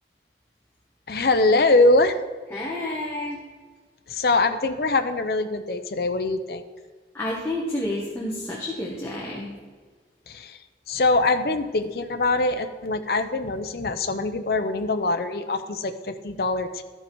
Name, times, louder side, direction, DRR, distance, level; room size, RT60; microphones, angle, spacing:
voice 1, 1.1-2.2 4.1-6.6 10.3-10.6 10.9-16.8, left 2 dB, 55° left, 8 dB, 0.7 m, -23 dB
voice 2, 2.5-3.4 7.1-9.5, left 1 dB, 15° left, -4 dB, 1.1 m, -30 dB
13.5 x 5.5 x 4.7 m, 1.5 s
head